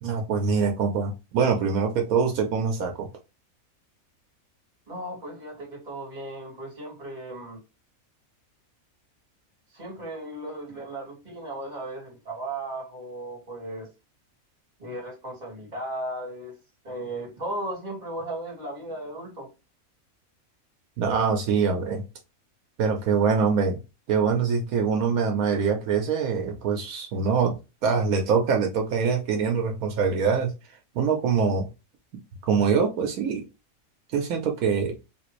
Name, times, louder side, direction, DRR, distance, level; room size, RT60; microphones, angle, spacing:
voice 1, 0.0-3.1 21.0-22.0 22.8-23.8 24.1-27.6 27.8-30.5 30.9-31.7 32.4-33.4 34.1-35.0, right 5 dB, 80° right, 1.1 m, -24 dB
voice 2, 4.9-7.6 9.7-13.9 14.8-16.5 16.8-19.5, right 1 dB, 30° right, 1.8 m, -36 dB
3.7 x 2.5 x 3.0 m
omnidirectional pair, 1.5 m